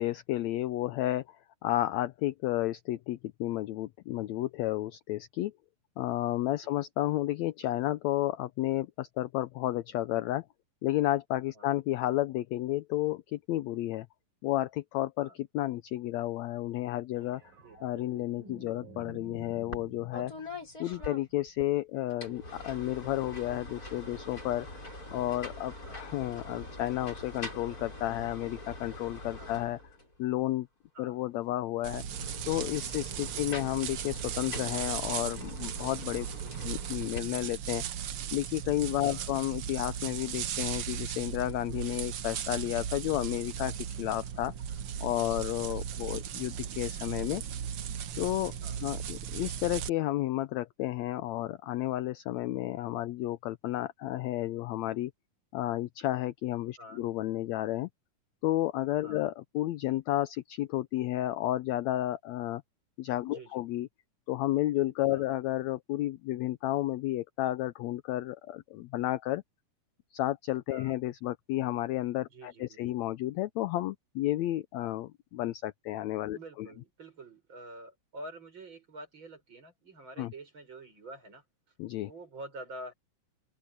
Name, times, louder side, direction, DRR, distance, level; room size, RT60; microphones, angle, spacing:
voice 1, 0.0-1.4 1.6-5.5 6.0-10.4 10.8-14.1 14.4-17.4 17.8-20.3 20.8-24.7 25.1-29.8 30.2-30.7 31.0-32.0 32.5-36.3 36.6-37.8 38.3-44.5 45.0-47.4 48.1-48.5 48.8-55.1 55.5-57.9 58.4-62.6 63.0-63.9 64.3-69.4 70.1-76.7 80.2-80.3 81.8-82.1, left 15 dB, 80° left, 1.6 m, -32 dB
sound 1, 17.2-21.7 24.1-24.2, right 2 dB, 80° right, 7.5 m, -51 dB
sound 2, 19.7-19.9 20.1-21.7 22.1-30.2 31.9-37.2, left 2 dB, 25° left, 8.0 m, -44 dB
sound 3, 31.8-49.9, right 9 dB, 65° right, 1.4 m, -37 dB
voice 2, 63.3-63.6 65.1-65.3 70.7-70.9 72.3-73.0 76.3-81.4 82.1-82.9, right 1 dB, 35° right, 7.5 m, -47 dB
open air
omnidirectional pair, 3.9 m